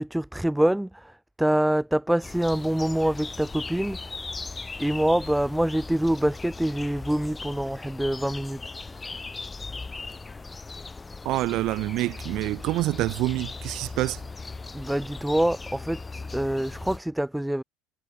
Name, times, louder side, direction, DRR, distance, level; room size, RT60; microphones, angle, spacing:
voice 1, 0.0-4.1 4.8-8.6 14.7-17.6, right 1 dB, 5° right, 2.8 m, -25 dB
sound 1, 2.2-17.0, left 3 dB, 20° left, 2.1 m, -38 dB
voice 2, 11.2-14.2, right 17 dB, 60° right, 1.1 m, -27 dB
hypercardioid pair, 80°, 0 cm